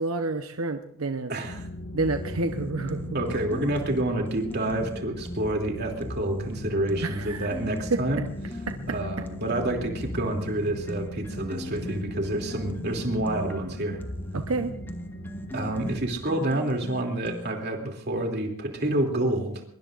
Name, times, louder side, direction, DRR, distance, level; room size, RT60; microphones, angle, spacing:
voice 1, 0.0-1.3 1.9-3.2 7.0-7.5 7.9-8.0 8.7-8.8 14.3-14.7, right 3 dB, 90° right, 6 dB, 1.0 m, -29 dB
voice 2, 1.3-1.7 3.1-8.2 8.9-14.0 15.5-19.6, right 1 dB, 50° right, 2 dB, 2.8 m, -28 dB
sound 1, 1.4-16.2, left 1 dB, 55° left, 1.8 m, -39 dB
sound 2, 2.0-5.5 6.0-9.5 10.0-17.8, equal, 10° left, 1.1 m, -40 dB
24.0 x 22.0 x 2.5 m, 0.66 s
head